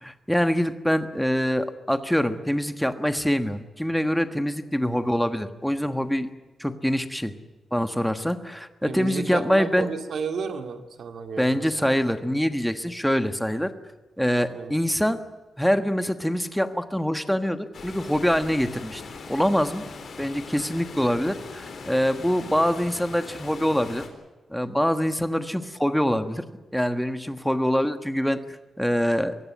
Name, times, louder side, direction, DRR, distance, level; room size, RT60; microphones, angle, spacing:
voice 1, 0.0-6.3 6.6-7.3 7.7-9.9 11.4-13.7 14.2-15.2 15.6-19.0 19.3-19.8 20.2-24.1 24.5-26.4 26.7-29.3, equal, ahead, 9 dB, 1.4 m, -24 dB
voice 2, 8.8-11.9 14.5-14.8, right 5 dB, 65° right, 7 dB, 2.3 m, -33 dB
Water, 17.7-24.1, left 4 dB, 55° left, 4.1 m, -40 dB
23.5 x 16.5 x 9.5 m, 1.2 s
wide cardioid pair, 135°, 0 cm